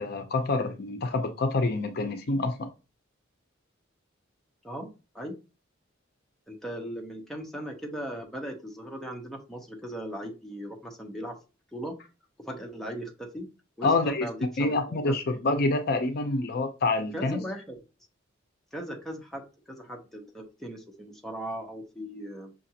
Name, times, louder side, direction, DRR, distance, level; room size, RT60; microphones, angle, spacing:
voice 1, 0.0-2.7 13.8-14.3 14.6-17.4, left 2 dB, 50° left, 0.5 m, -27 dB
voice 2, 6.5-11.4 11.7-12.0 12.4-13.5 13.8-15.1 17.1-17.8 18.7-22.5, equal, ahead, 0.7 m, -38 dB
5.7 x 2.5 x 2.8 m
head